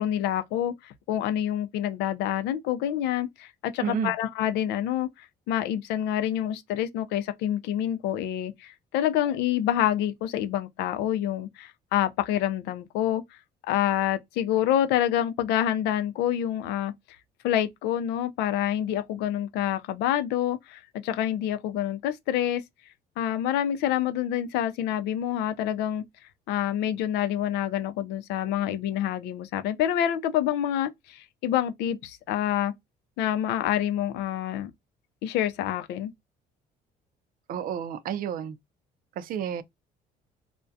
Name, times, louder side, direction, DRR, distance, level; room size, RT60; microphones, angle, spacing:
voice 1, 0.0-13.4 13.7-16.9 17.4-22.6 23.2-26.0 26.5-32.7 33.2-34.7 35.2-36.1, left 11 dB, 85° left, 0.4 m, -27 dB
voice 2, 3.8-4.1 37.5-38.6 39.2-39.6, right 8 dB, 55° right, 0.4 m, -30 dB
2.3 x 2.1 x 2.5 m
cardioid pair, 110°, 17 cm